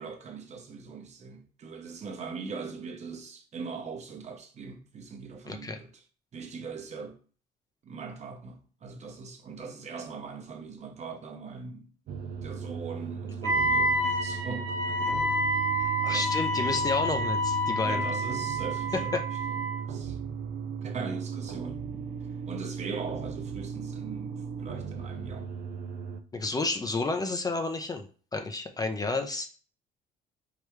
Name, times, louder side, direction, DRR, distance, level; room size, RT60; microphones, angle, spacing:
voice 1, 0.0-5.9 6.3-7.2 7.8-15.2 16.1-16.3 17.8-19.2 19.9-20.2 20.8-22.1 22.5-25.5, right 5 dB, 40° right, 0.9 m, -40 dB
voice 2, 5.5-5.8 13.4-13.5 15.8-18.1 18.9-19.2 26.3-29.5, left 3 dB, 20° left, 0.5 m, -31 dB
sound 1, 12.1-26.2, right 7 dB, 65° right, 0.5 m, -37 dB
Wind instrument woodwind instrument, 13.4-19.9, equal, 90° right, 0.9 m, -28 dB
4.9 x 3.2 x 3.2 m
cardioid pair, 110°, 17 cm